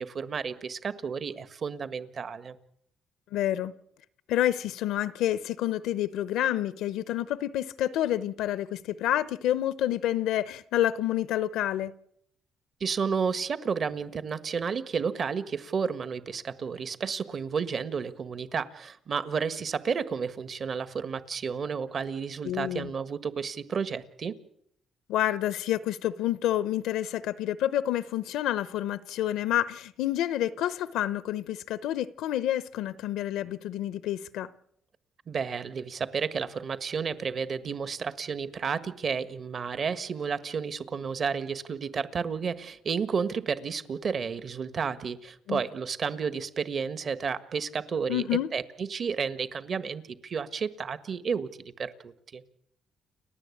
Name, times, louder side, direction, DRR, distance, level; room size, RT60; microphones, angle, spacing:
voice 1, 0.0-2.6 12.8-24.4 35.3-52.4, right 6 dB, 50° right, 1.5 m, -32 dB
voice 2, 3.3-3.7 4.3-11.9 22.4-22.9 25.1-34.5 45.5-45.6 48.1-48.5, left 12 dB, 90° left, 0.8 m, -28 dB
30.0 x 11.0 x 8.6 m
cardioid pair, 90°, 0 cm